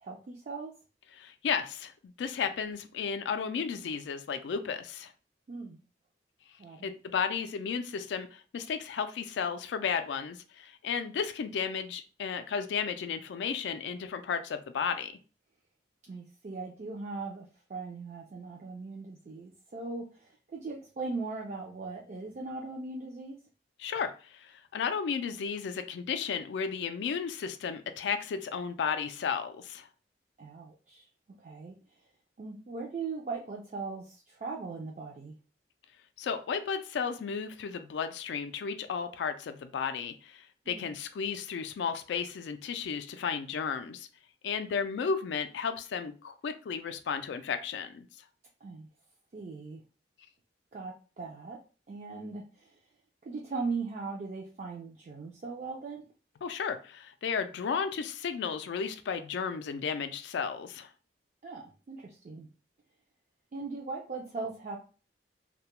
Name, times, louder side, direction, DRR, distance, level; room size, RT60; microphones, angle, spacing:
voice 1, 0.0-0.7 5.5-5.8 6.6-6.9 16.0-23.4 30.4-31.1 31.4-31.7 32.4-35.3 40.7-40.9 48.6-48.9 49.3-49.8 50.7-51.6 51.9-52.8 53.2-56.1 61.4-62.5 63.5-64.8, right 4 dB, 40° right, -1 dB, 0.3 m, -39 dB
voice 2, 1.2-5.1 6.8-15.1 23.8-29.9 36.2-44.1 44.4-48.1 56.4-60.9, left 6 dB, 75° left, 9 dB, 0.3 m, -33 dB
2.2 x 2.1 x 2.9 m, 0.36 s
head